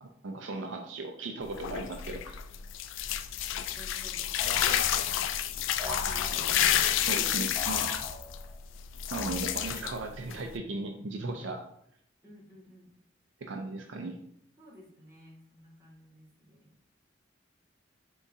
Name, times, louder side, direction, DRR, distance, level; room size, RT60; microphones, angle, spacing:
voice 1, 0.0-2.4 7.1-7.9 9.1-11.7 13.4-14.2, right 2 dB, 75° right, 4 dB, 0.5 m, -37 dB
sound 1, 1.4-10.6, left 10 dB, 85° left, 0.3 m, -30 dB
voice 2, 3.7-4.4 5.6-6.9 7.2-7.9 12.2-12.9 14.6-16.7, equal, 15° right, -8 dB, 1.9 m, -52 dB
sound 2, 4.4-5.3 5.8-6.7 7.6-8.6 9.1-9.8, left 1 dB, 10° left, 1.2 m, -40 dB
5.4 x 3.5 x 2.7 m, 0.72 s
head